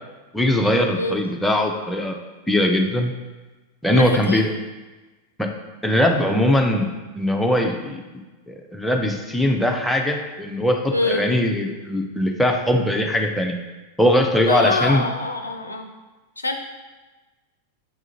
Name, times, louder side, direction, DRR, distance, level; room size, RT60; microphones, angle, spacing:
voice 1, 0.3-2.2 2.5-3.1 3.8-4.5 5.4-5.5 5.8-6.9 7.2-8.0 8.5-13.6 14.0-15.0, left 1 dB, 5° left, 2 dB, 0.5 m, -20 dB
voice 2, 3.9-4.4 10.9-11.2 14.5-15.9 16.4-16.6, left 2 dB, 80° left, 4 dB, 0.4 m, -24 dB
6.5 x 2.4 x 2.9 m, 1.2 s
figure-of-eight pair, 90°, 0 cm